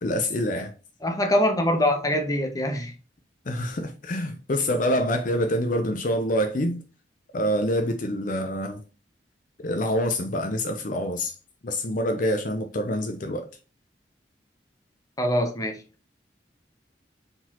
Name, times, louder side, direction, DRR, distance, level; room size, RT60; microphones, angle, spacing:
voice 1, 0.0-0.7 3.5-6.8 7.3-8.8 9.6-11.3 11.6-13.5, equal, 50° left, 0.6 m, -26 dB
voice 2, 1.0-2.9 15.2-15.8, left 1 dB, 20° left, 0.8 m, -23 dB
4.5 x 3.9 x 2.9 m
head